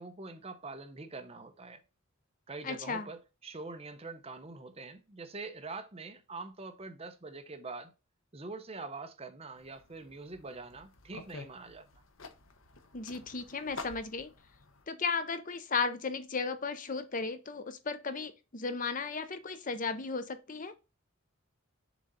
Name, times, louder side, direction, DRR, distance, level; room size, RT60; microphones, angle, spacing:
voice 1, 0.0-1.8 2.5-7.9 8.3-11.9, right 3 dB, 30° right, 0.7 m, -44 dB
voice 2, 2.6-3.1 12.9-14.3 14.9-20.7, left 4 dB, 40° left, 0.7 m, -35 dB
sound 1, 9.6-14.8, left 3 dB, 70° left, 1.0 m, -50 dB
7.1 x 3.8 x 4.0 m
head